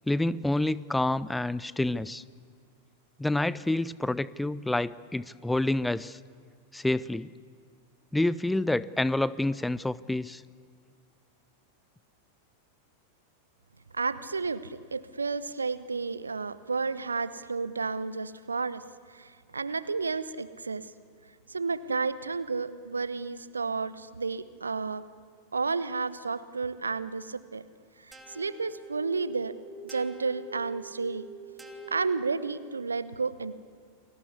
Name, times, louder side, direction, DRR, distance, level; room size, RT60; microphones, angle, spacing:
voice 1, 0.1-2.2 3.2-6.2 6.7-7.3 8.1-10.4, left 2 dB, 5° left, 20 dB, 0.6 m, -28 dB
voice 2, 13.9-18.8 19.1-20.9 21.5-25.1 25.5-27.6 28.0-29.6 29.8-31.2 31.9-33.6, right 4 dB, 75° right, 16 dB, 1.1 m, -32 dB
sound 1, 28.1-32.9, right 3 dB, 10° right, 2.8 m, -46 dB
29.5 x 21.5 x 8.4 m, 2.2 s
figure-of-eight pair, 90°, 0 cm